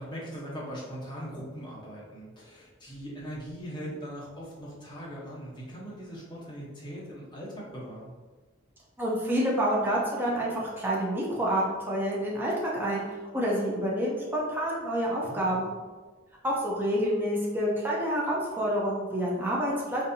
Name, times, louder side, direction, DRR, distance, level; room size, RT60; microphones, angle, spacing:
voice 1, 0.0-8.1 15.2-15.6, equal, 20° left, -6 dB, 0.9 m, -40 dB
voice 2, 9.0-15.7 16.4-20.0, equal, 10° right, -5 dB, 0.5 m, -28 dB
4.0 x 2.6 x 2.6 m, 1.3 s
head